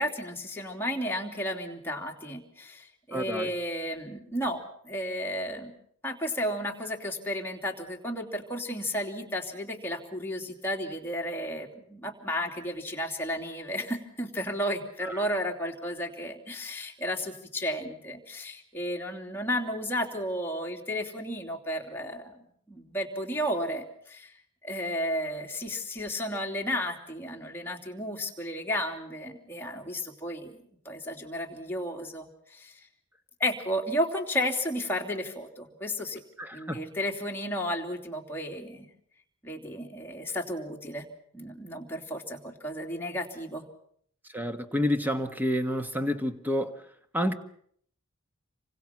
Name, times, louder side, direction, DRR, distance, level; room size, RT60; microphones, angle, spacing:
voice 1, 0.0-5.7 6.0-22.4 22.7-24.3 24.6-32.9 33.4-36.2 36.5-38.9 39.4-41.0 41.3-43.7, equal, 10° left, 3.1 m, -33 dB
voice 2, 3.1-3.5 15.0-15.2 36.4-36.8 44.3-46.8 47.1-47.3, equal, 10° right, 1.5 m, -29 dB
28.5 x 25.0 x 6.0 m
head